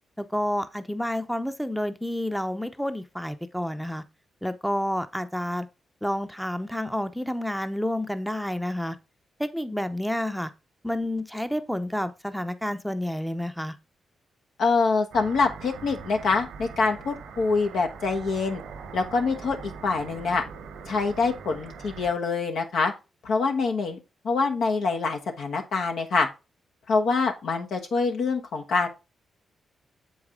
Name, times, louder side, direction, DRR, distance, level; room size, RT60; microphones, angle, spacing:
voice 1, 0.2-4.0 4.4-5.7 6.0-9.0 9.4-10.5 10.8-13.8, left 1 dB, ahead, 0.6 m, -29 dB
voice 2, 14.6-18.6 18.9-20.4 20.9-22.9 23.2-24.0 24.2-26.3 26.9-28.9, left 4 dB, 75° left, 1.1 m, -25 dB
sound 1, 15.1-22.1, right 6 dB, 85° right, 1.0 m, -42 dB
7.2 x 4.7 x 3.6 m
supercardioid pair, 55°, 0 cm